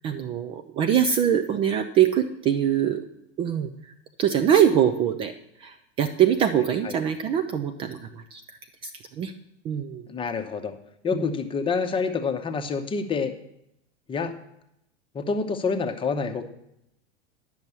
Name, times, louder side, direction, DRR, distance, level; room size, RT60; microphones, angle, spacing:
voice 1, 0.0-3.0 3.4-3.7 4.2-5.3 5.6-8.4 8.8-8.9 9.2-9.3 9.6-10.1 11.1-11.3, right 9 dB, 15° right, 7 dB, 0.3 m, -23 dB
voice 2, 10.1-10.8 11.0-13.3 14.1-14.3 15.1-16.4, left 5 dB, 15° left, 7 dB, 0.9 m, -27 dB
10.5 x 6.2 x 6.8 m, 0.81 s
figure-of-eight pair, 95°, 34 cm